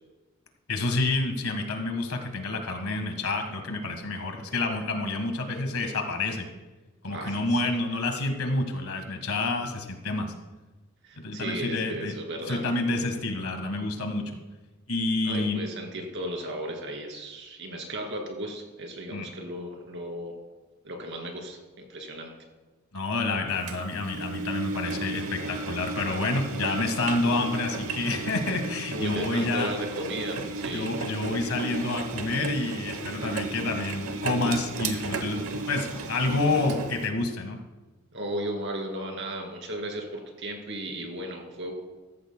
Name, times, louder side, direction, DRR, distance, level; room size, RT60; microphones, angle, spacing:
voice 1, 0.7-6.4 7.0-10.3 11.2-12.2 12.5-14.4 14.9-15.6 19.1-19.3 22.9-29.7 30.7-37.6, left 2 dB, 80° left, 4 dB, 1.6 m, -28 dB
voice 2, 7.1-7.6 11.0-12.6 15.2-20.3 20.8-22.3 28.9-30.9 38.1-41.7, right 1 dB, 60° right, 2 dB, 2.5 m, -35 dB
Engine, 23.7-37.1, right 3 dB, 80° right, 0.9 m, -34 dB
15.5 x 14.5 x 2.2 m, 1.2 s
head